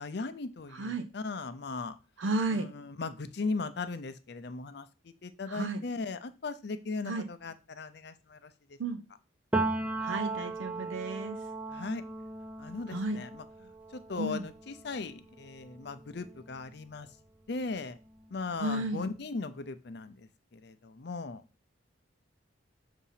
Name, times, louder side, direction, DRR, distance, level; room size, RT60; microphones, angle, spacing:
voice 1, 0.0-1.9 2.5-4.9 5.2-8.8 11.7-12.0 12.6-13.4 13.9-17.1 17.5-18.0 18.3-21.4, left 3 dB, 55° left, 10 dB, 0.5 m, -38 dB
voice 2, 0.7-1.1 2.2-2.7 5.5-5.8 7.1-7.3 8.8-9.0 10.0-11.4 12.9-13.2 14.2-14.4 18.6-19.1, right 2 dB, 75° right, 8 dB, 0.5 m, -33 dB
Piano, 9.5-17.1 17.5-19.0, right 3 dB, 5° right, 0.4 m, -38 dB
6.0 x 2.8 x 5.6 m, 0.31 s
head